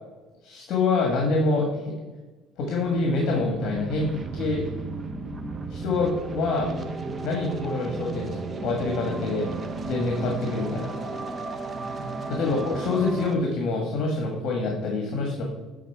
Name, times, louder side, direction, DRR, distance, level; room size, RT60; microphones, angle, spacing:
voice 1, 0.4-1.9 2.6-4.6 5.7-6.7 7.2-9.5 9.9-10.9 12.3-15.4, left 3 dB, 60° left, 1 dB, 1.4 m, -26 dB
sound 1, 2.7-13.4, right 3 dB, 30° right, 0.7 m, -34 dB
9.1 x 3.9 x 4.6 m, 1.2 s
cardioid pair, 115°, 0 cm